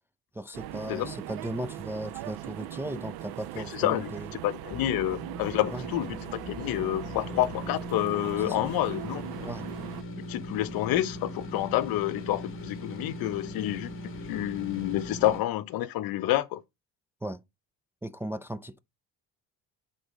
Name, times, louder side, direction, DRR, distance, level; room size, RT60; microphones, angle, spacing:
voice 1, 0.3-4.3 5.7-5.9 8.4-8.6 9.4-9.7 17.2-17.4 18.0-18.8, right 1 dB, 5° right, 0.3 m, -36 dB
sound 1, 0.5-10.0, right 14 dB, 80° right, 0.7 m, -40 dB
voice 2, 3.7-9.3 10.3-16.6, left 14 dB, 70° left, 0.8 m, -29 dB
sound 2, 4.7-15.4, left 1 dB, 35° left, 1.5 m, -40 dB
7.9 x 4.0 x 3.8 m
cardioid pair, 120°, 37 cm